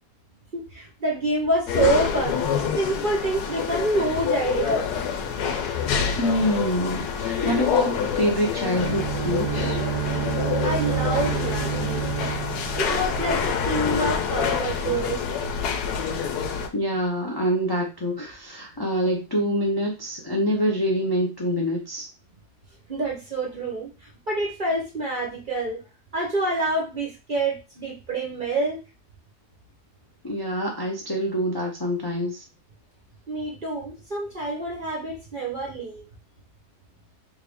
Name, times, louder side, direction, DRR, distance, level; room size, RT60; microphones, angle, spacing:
voice 1, 0.5-2.4 2.8-4.8 10.6-12.0 12.7-15.2 22.9-25.8 26.1-28.8 33.3-36.0, right 2 dB, 40° right, -1 dB, 0.8 m, -27 dB
sound 1, 1.7-16.7, left 6 dB, 75° left, 1.1 m, -27 dB
voice 2, 6.2-9.8 16.7-22.1 30.2-32.4, equal, 30° left, -2 dB, 0.4 m, -26 dB
Bowed string instrument, 8.7-13.7, right 12 dB, 70° right, 1.0 m, -29 dB
3.5 x 2.6 x 3.4 m, 0.29 s
omnidirectional pair, 1.7 m